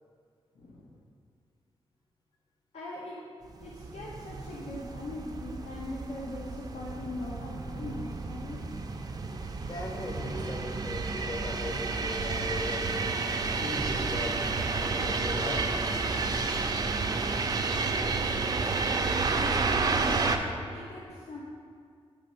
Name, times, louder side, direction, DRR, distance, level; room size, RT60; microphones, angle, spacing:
voice 1, 0.5-0.9 2.7-3.1 3.6-8.6 19.3-21.4, left 2 dB, 80° left, -4 dB, 0.9 m, -41 dB
sound 1, 3.6-20.4, right 4 dB, 35° right, 0.4 m, -31 dB
voice 2, 9.6-13.2 13.6-14.4 14.8-15.7, left 1 dB, 40° left, 0 dB, 0.8 m, -38 dB
8.7 x 3.3 x 5.6 m, 2.2 s
wide cardioid pair, 130°, 11 cm